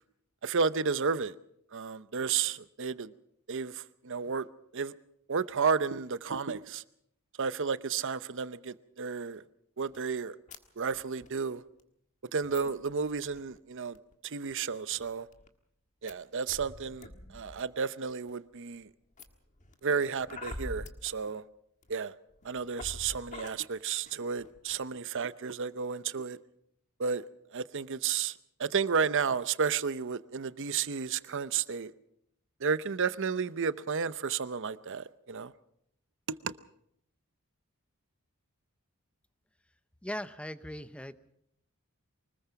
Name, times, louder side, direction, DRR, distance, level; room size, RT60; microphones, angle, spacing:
voice 1, 0.4-1.4 1.7-3.1 3.5-4.5 4.7-4.9 5.3-6.8 7.4-9.4 9.8-10.4 10.8-11.6 12.3-14.0 14.2-15.3 16.0-18.9 19.8-21.4 21.9-22.1 22.4-26.4 27.0-27.3 27.5-31.9 32.6-35.5 36.4-36.5, right 5 dB, 55° right, 0.7 m, -32 dB
sound 1, 9.9-10.0 10.5-10.6 10.8-11.3 11.8-11.9 12.4-13.6 13.9-14.1 14.5-14.6 14.9-15.5 16.1-16.2 16.5-17.6 18.1-18.5 19.2-21.1 21.8-21.9 22.3-23.5 24.1-24.2 24.4-24.8, left 2 dB, 35° left, 1.6 m, -46 dB
voice 2, 40.0-41.3, equal, 5° left, 0.7 m, -39 dB
24.0 x 20.0 x 5.8 m
head